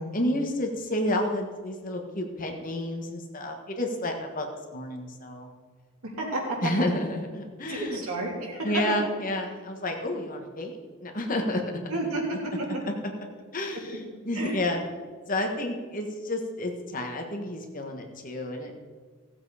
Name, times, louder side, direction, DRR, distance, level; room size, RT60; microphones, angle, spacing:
voice 1, 0.1-4.5 4.7-5.5 6.6-8.0 8.6-11.6 13.5-14.8 15.3-18.8, left 1 dB, 40° left, 3 dB, 1.4 m, -30 dB
voice 2, 6.2-6.6 7.7-8.7 11.9-12.7 14.3-14.6, right 2 dB, 85° right, -3 dB, 3.3 m, -31 dB
15.5 x 7.7 x 5.0 m, 1.5 s
head